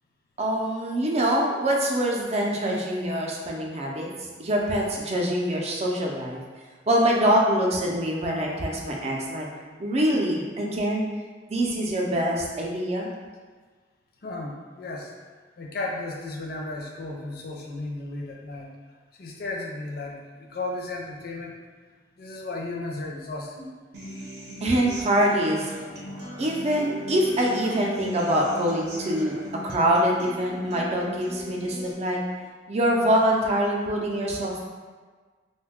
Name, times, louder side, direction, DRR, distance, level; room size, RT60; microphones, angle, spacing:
voice 1, 0.4-4.1 4.4-6.4 6.9-9.5 9.8-11.1 11.5-13.1 24.6-25.7 26.4-29.4 29.6-32.2 32.7-34.6, equal, 40° right, -1 dB, 0.5 m, -24 dB
voice 2, 14.2-15.1 15.6-18.7 19.1-21.5 22.2-23.7 26.1-26.3, left 2 dB, 60° left, -1 dB, 0.5 m, -34 dB
Human voice / Acoustic guitar, 23.9-31.9, equal, 70° right, 0.7 m, -38 dB
2.6 x 2.2 x 3.5 m, 1.5 s
head